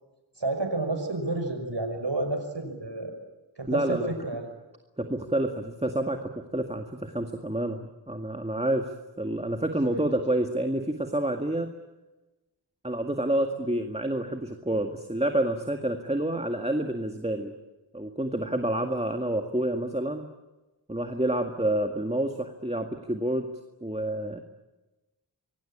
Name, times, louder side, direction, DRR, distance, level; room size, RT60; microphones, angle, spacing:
voice 1, 0.4-3.2 3.6-4.5 9.9-10.0 18.5-18.7, right 2 dB, 75° right, 6 dB, 5.9 m, -31 dB
voice 2, 3.7-4.1 5.0-11.7 12.8-17.5 17.9-20.3 20.9-23.5 23.8-24.4, right 1 dB, 15° right, 5 dB, 1.9 m, -28 dB
26.0 x 23.5 x 8.8 m, 1.1 s
wide cardioid pair, 45°, 43 cm